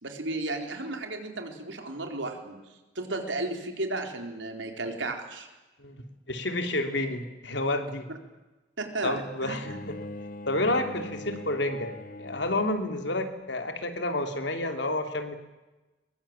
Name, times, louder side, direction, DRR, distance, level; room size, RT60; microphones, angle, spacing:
voice 1, 0.0-2.6 3.0-5.5 8.8-9.8, right 2 dB, 80° right, 4 dB, 4.2 m, -34 dB
voice 2, 5.8-8.1 9.0-9.9 10.5-15.4, left 2 dB, 70° left, 6 dB, 3.0 m, -30 dB
Bowed string instrument, 9.6-12.8, left 1 dB, 45° left, 1.0 m, -41 dB
22.5 x 22.0 x 8.9 m, 1.1 s
head